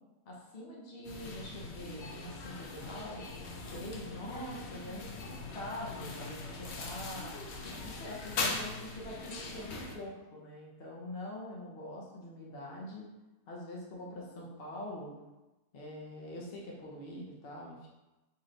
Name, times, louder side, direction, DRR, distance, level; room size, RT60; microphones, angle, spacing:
voice 1, 0.2-7.4 7.8-13.1 13.5-15.1 15.7-17.9, left 1 dB, 40° left, -3 dB, 1.0 m, -44 dB
sound 1, 1.0-10.0, left 3 dB, 60° left, 0.7 m, -40 dB
4.3 x 3.1 x 3.9 m, 1.0 s
omnidirectional pair, 1.7 m